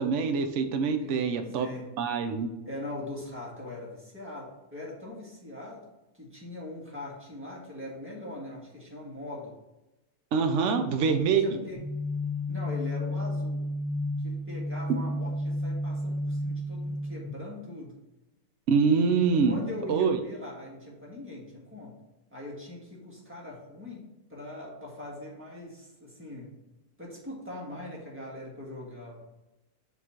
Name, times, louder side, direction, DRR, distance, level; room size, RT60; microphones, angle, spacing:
voice 1, 0.0-1.7 2.0-2.5 10.3-11.4 18.7-19.6 19.9-20.2, right 5 dB, 60° right, 7 dB, 0.9 m, -25 dB
voice 2, 1.0-1.9 2.6-5.8 6.1-9.5 11.3-11.8 12.5-13.6 14.2-17.9 19.5-21.9 22.3-24.0 24.3-26.6 27.0-29.2, left 1 dB, 10° right, -4 dB, 1.5 m, -41 dB
sound 1, 11.7-17.3, left 1 dB, 40° right, 1.8 m, -32 dB
7.2 x 3.2 x 4.3 m, 1.0 s
omnidirectional pair, 1.6 m